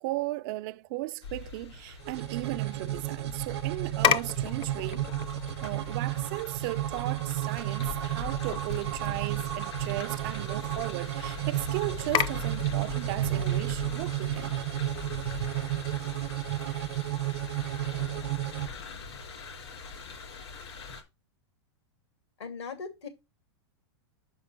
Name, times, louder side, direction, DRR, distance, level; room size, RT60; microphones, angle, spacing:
voice 1, 0.0-5.1 5.6-14.7, right 20 dB, 50° right, 0.4 m, -36 dB
sound 1, 1.2-21.0, left 4 dB, 70° left, 3.6 m, -42 dB
sound 2, 2.0-18.7, right 14 dB, 70° right, 0.8 m, -32 dB
sound 3, 3.9-15.9, left 10 dB, 35° left, 0.6 m, -36 dB
voice 2, 22.4-23.1, left 5 dB, 85° left, 3.0 m, -39 dB
5.9 x 5.5 x 6.5 m
hypercardioid pair, 125°, 14 cm